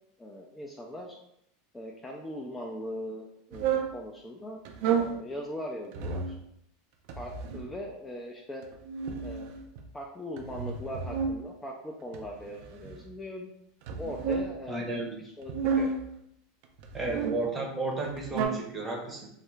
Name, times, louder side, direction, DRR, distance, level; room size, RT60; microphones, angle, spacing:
voice 1, 0.2-1.2 1.7-4.6 4.9-6.3 7.2-8.6 9.2-9.5 9.9-13.5 14.0-15.9, equal, 10° left, 0 dB, 0.3 m, -40 dB
sound 1, 3.5-3.9 4.6-5.2 5.9-6.4 7.1-7.7 8.6-9.9 10.4-11.4 12.1-13.1 13.8-14.5 15.4-16.1 16.8-17.4 18.0-18.5, right 6 dB, 65° right, 0.4 m, -31 dB
voice 2, 14.7-15.2 16.9-19.3, right 2 dB, 20° right, 0 dB, 0.7 m, -33 dB
2.3 x 2.0 x 3.1 m, 0.76 s
supercardioid pair, 115°, 0 cm